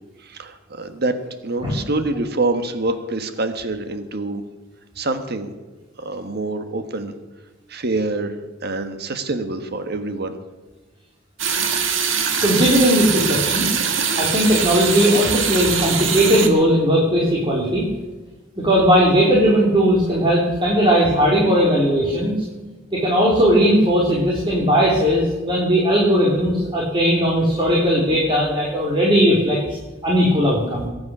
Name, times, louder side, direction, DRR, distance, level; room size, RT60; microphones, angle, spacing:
voice 1, 0.2-1.2 1.4-4.4 5.0-5.5 6.0-7.1 7.7-8.4 8.6-10.4, right 2 dB, 55° right, 8 dB, 1.4 m, -25 dB
sound 1, 11.4-16.5, right 6 dB, 75° right, 1.9 m, -22 dB
voice 2, 12.4-13.7 14.2-17.8 18.6-22.3 22.9-29.8 30.0-30.9, equal, 25° right, -4 dB, 3.2 m, -18 dB
22.5 x 9.6 x 6.1 m, 1.2 s
head